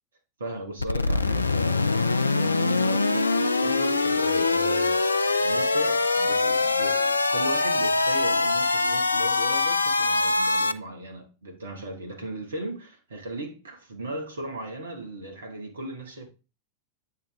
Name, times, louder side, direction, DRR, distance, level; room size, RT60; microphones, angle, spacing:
voice 1, 0.4-16.3, right 1 dB, 70° right, 1.9 m, -36 dB
sound 1, 0.8-10.7, left 3 dB, 80° left, 0.4 m, -23 dB
8.8 x 4.6 x 3.7 m
figure-of-eight pair, 90°, 0 cm